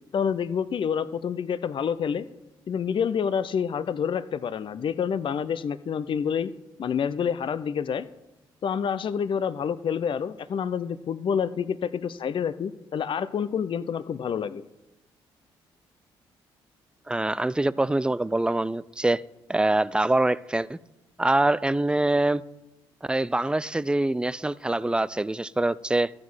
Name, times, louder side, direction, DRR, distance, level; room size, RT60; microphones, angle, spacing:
voice 1, 0.1-2.3 2.7-6.5 6.8-8.1 8.6-14.6, left 7 dB, 50° left, 15 dB, 0.5 m, -28 dB
voice 2, 17.1-19.2 19.5-20.8 21.2-22.4 23.1-26.1, right 2 dB, 10° right, 20 dB, 0.4 m, -24 dB
12.5 x 7.3 x 6.3 m, 1.0 s
hypercardioid pair, 55°, 11 cm